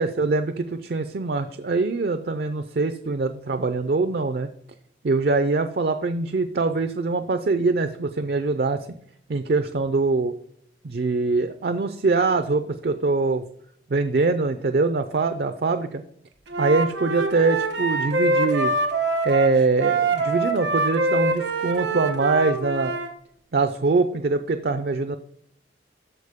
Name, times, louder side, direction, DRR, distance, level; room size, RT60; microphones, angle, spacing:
voice 1, 0.0-4.5 5.0-8.8 9.3-10.4 10.8-13.4 13.9-16.0 16.6-18.7 19.2-22.9 23.5-25.2, right 3 dB, 55° right, 9 dB, 0.5 m, -23 dB
Wind instrument woodwind instrument, 16.5-23.1, right 3 dB, 90° right, 1.2 m, -24 dB
13.0 x 4.4 x 3.6 m, 0.67 s
head